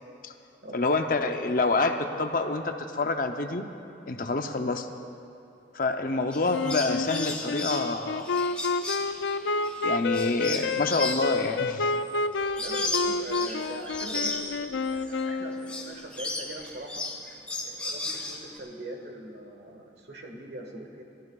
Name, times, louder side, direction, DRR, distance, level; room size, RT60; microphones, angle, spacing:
voice 1, 0.7-3.6 4.1-4.9 5.7-8.3 9.8-12.0, left 3 dB, 50° left, 6 dB, 0.7 m, -27 dB
sound 1, 6.3-15.3 15.6-18.6, left 2 dB, 5° left, 1.2 m, -35 dB
Wind instrument woodwind instrument, 6.5-16.0, left 3 dB, 85° left, 0.4 m, -30 dB
voice 2, 12.6-17.1 17.6-21.0, right 1 dB, 65° right, 2 dB, 1.8 m, -42 dB
29.5 x 13.5 x 2.4 m, 2.7 s
head